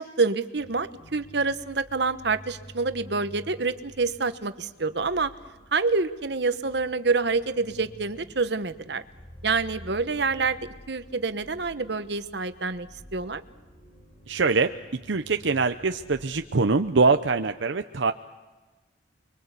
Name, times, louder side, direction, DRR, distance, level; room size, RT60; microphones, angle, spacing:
voice 1, 0.0-5.3 5.7-9.0 9.4-10.6 10.9-13.4, right 4 dB, 65° right, 11 dB, 1.2 m, -27 dB
sound 1, 0.5-17.4, equal, 50° left, 6.0 m, -50 dB
voice 2, 14.3-18.1, right 4 dB, 80° right, 8 dB, 0.8 m, -23 dB
29.5 x 23.5 x 8.3 m, 1.2 s
head